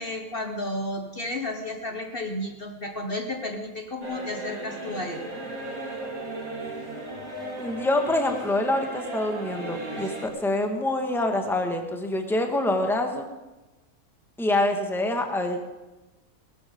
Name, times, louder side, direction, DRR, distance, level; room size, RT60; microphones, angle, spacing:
voice 1, 0.0-5.2, left 1 dB, 40° left, 4 dB, 1.3 m, -32 dB
sound 1, 4.0-10.3, right 2 dB, 65° right, 3.9 m, -36 dB
voice 2, 7.6-13.3 14.4-15.6, left 1 dB, ahead, 4 dB, 1.4 m, -26 dB
18.5 x 13.0 x 5.2 m, 1.1 s
omnidirectional pair, 1.6 m